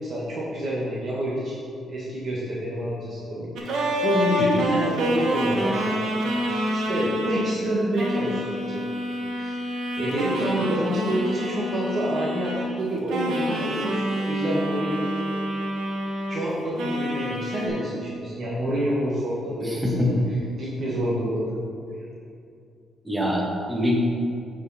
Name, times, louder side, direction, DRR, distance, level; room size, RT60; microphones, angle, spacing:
voice 1, 0.0-1.6 1.9-6.3 6.7-8.8 9.3-9.6 10.0-15.0 16.3-20.1 20.5-21.4 22.0-22.1, right 1 dB, 45° right, -6 dB, 1.5 m, -28 dB
sound 1, 3.6-7.5 7.9-12.8 13.1-16.4 16.8-17.7, equal, 75° right, 1.3 m, -27 dB
voice 2, 19.6-20.2 23.0-24.0, left 1 dB, 10° right, -1 dB, 1.4 m, -24 dB
9.4 x 5.2 x 4.2 m, 2.5 s
cardioid pair, 90°, 0 cm